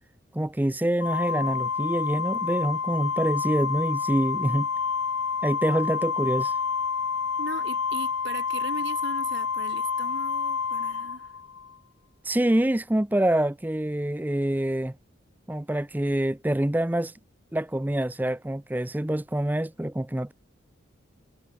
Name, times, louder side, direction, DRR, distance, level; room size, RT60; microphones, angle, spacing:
voice 1, 0.3-4.7 5.4-6.5 12.2-14.9 15.5-17.1 17.5-20.3, right 1 dB, 10° right, 0.4 m, -26 dB
Organ, 1.0-11.7, left 6 dB, 85° left, 1.0 m, -29 dB
voice 2, 7.4-11.3, right 3 dB, 60° right, 1.9 m, -39 dB
head